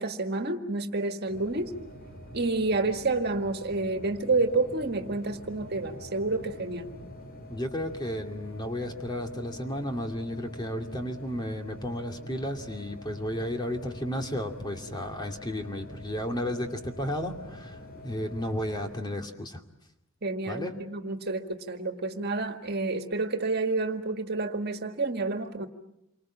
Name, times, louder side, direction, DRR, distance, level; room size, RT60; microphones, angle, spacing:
voice 1, 0.0-1.7 2.3-6.9 20.2-25.7, right 3 dB, 55° right, 6 dB, 1.9 m, -29 dB
sound 1, 1.3-19.0, left 1 dB, 45° left, 3.9 m, -45 dB
voice 2, 7.5-19.6 20.5-20.8, equal, 20° left, 4 dB, 2.6 m, -33 dB
28.5 x 24.5 x 7.5 m, 0.84 s
head